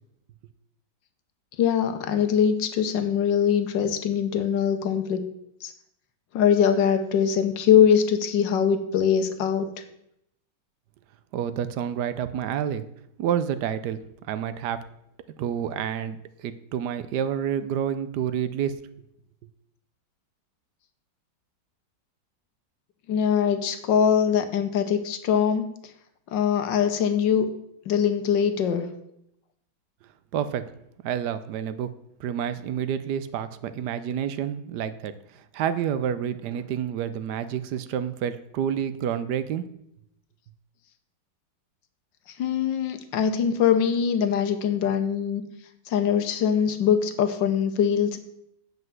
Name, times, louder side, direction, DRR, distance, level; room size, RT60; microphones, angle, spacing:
voice 1, 1.6-5.2 5.6-5.7 6.3-9.7 23.1-25.6 26.3-27.5 27.9-28.9 42.4-45.4 45.9-48.2, left 8 dB, 75° left, 9 dB, 1.5 m, -22 dB
voice 2, 11.3-12.8 13.2-14.0 14.3-14.8 15.4-18.8 30.3-30.7 31.0-31.9 32.2-39.6, right 9 dB, 70° right, 13 dB, 1.1 m, -29 dB
7.8 x 5.5 x 7.4 m, 0.78 s
omnidirectional pair, 2.0 m